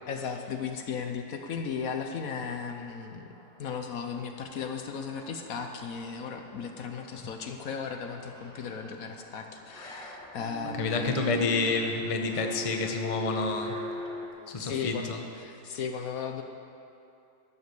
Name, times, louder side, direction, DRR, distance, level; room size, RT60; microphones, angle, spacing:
voice 1, 0.1-3.3 3.6-11.2 14.5-15.1 15.4-16.4, left 6 dB, 65° left, 5 dB, 1.2 m, -36 dB
sound 1, 2.8-14.3, equal, 5° left, 1.5 m, -42 dB
voice 2, 10.8-13.8 14.5-15.2, left 3 dB, 25° left, 3 dB, 0.8 m, -29 dB
12.5 x 9.9 x 6.8 m, 2.7 s
omnidirectional pair, 1.7 m